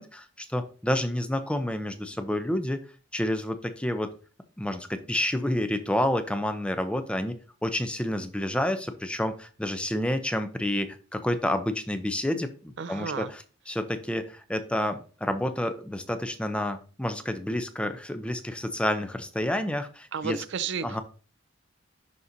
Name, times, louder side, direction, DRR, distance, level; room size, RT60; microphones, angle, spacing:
voice 1, 0.0-2.8 3.1-4.1 4.6-7.4 7.6-20.4 20.8-21.0, left 1 dB, 5° left, 9 dB, 0.5 m, -29 dB
voice 2, 12.8-13.3 20.1-21.0, right 6 dB, 65° right, 13 dB, 0.5 m, -32 dB
11.0 x 4.1 x 2.7 m, 0.38 s
head